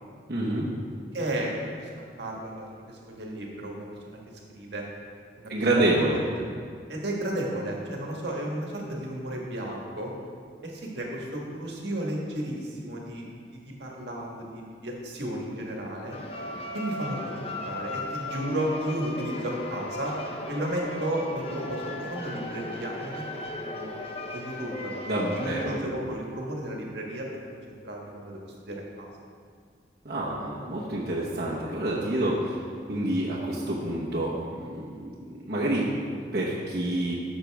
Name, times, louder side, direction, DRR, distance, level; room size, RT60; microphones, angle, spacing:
voice 1, 0.3-0.7 5.5-6.2 25.1-25.8 30.0-32.6 32.9-37.1, right 1 dB, 60° right, -7 dB, 1.1 m, -28 dB
voice 2, 1.1-4.2 4.5-4.8 5.4-6.0 6.3-6.4 6.9-10.1 10.6-13.2 13.5-16.2 16.7-20.1 20.5-23.2 23.5-23.9 24.3-24.9 25.3-29.1, right 1 dB, 75° right, -1 dB, 1.5 m, -33 dB
sound 1, 16.1-25.8, left 2 dB, 35° left, 0.7 m, -36 dB
11.0 x 6.7 x 3.5 m, 2.1 s
head